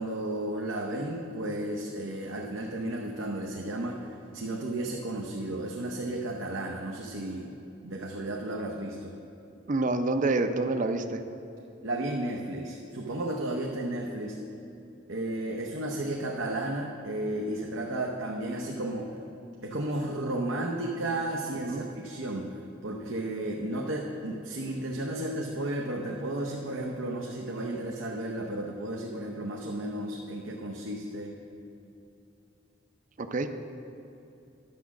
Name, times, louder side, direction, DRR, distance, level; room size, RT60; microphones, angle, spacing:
voice 1, 0.0-7.6 7.8-9.2 11.8-14.4 15.1-19.1 19.6-31.4, right 1 dB, 90° right, -1 dB, 0.8 m, -33 dB
voice 2, 9.7-11.2 21.7-21.8 33.2-33.5, right 2 dB, 40° right, 8 dB, 0.5 m, -27 dB
10.5 x 6.1 x 7.1 m, 2.8 s
head